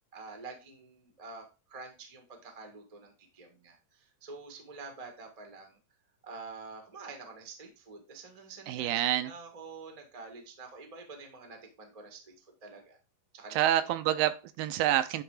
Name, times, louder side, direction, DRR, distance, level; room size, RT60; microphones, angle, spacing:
voice 1, 0.1-5.8 6.2-13.0 13.3-13.9, right 4 dB, 40° right, 0.5 m, -47 dB
voice 2, 8.7-9.3 13.5-15.2, right 12 dB, 85° right, 2.4 m, -27 dB
10.5 x 3.7 x 4.9 m
omnidirectional pair, 4.0 m